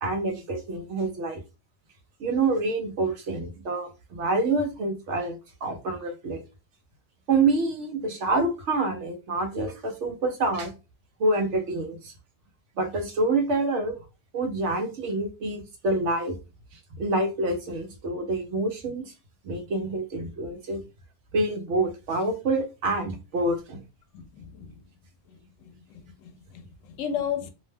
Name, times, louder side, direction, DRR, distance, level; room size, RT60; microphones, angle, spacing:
voice 1, 0.0-1.4 2.2-6.4 7.3-10.7 11.2-12.1 12.8-14.0 14.3-16.4 16.7-19.1 19.4-20.8 21.3-23.8, right 2 dB, 70° right, 1.0 m, -27 dB
voice 2, 24.1-24.7 25.7-27.5, left 8 dB, 85° left, 0.9 m, -34 dB
2.6 x 2.1 x 3.3 m
omnidirectional pair, 1.3 m